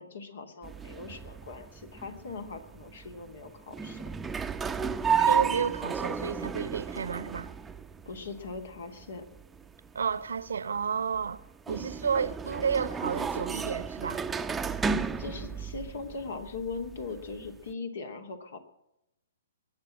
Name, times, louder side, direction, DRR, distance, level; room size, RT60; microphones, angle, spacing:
voice 1, 0.0-4.0 8.0-9.2 15.2-18.6, left 4 dB, 65° left, 2.8 m, -40 dB
sound 1, 0.6-17.7, right 6 dB, 10° right, 0.8 m, -33 dB
voice 2, 5.2-7.5 9.9-14.2, right 6 dB, 70° right, 0.9 m, -31 dB
21.5 x 8.1 x 7.7 m
figure-of-eight pair, 120°, 0 cm